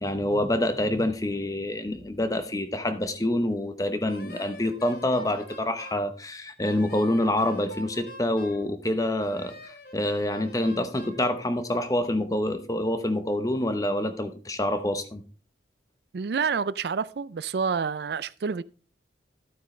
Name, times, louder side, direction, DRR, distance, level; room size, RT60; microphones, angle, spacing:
voice 1, 0.0-15.2, left 1 dB, 20° left, 0.9 m, -27 dB
Wind instrument woodwind instrument, 4.1-6.1 6.6-8.7 9.2-11.2, equal, 55° left, 1.9 m, -45 dB
voice 2, 16.1-18.6, right 5 dB, 65° right, 0.4 m, -28 dB
11.5 x 9.2 x 3.2 m
head